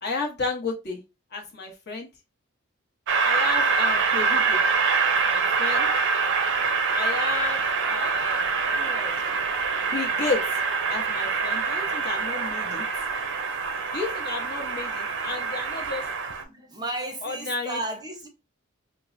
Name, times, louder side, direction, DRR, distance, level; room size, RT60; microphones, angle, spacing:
voice 1, 0.0-1.0 1.3-2.1 3.2-4.6 5.1-5.9 6.9-8.5 8.7-9.1 9.8-10.6 10.9-12.8 13.9-16.1 17.2-17.8, left 3 dB, 50° left, 0.9 m, -32 dB
Train, 3.1-16.4, right 4 dB, 60° right, 0.5 m, -25 dB
voice 2, 16.4-18.3, right 2 dB, 20° right, 0.6 m, -33 dB
4.4 x 2.0 x 2.5 m
head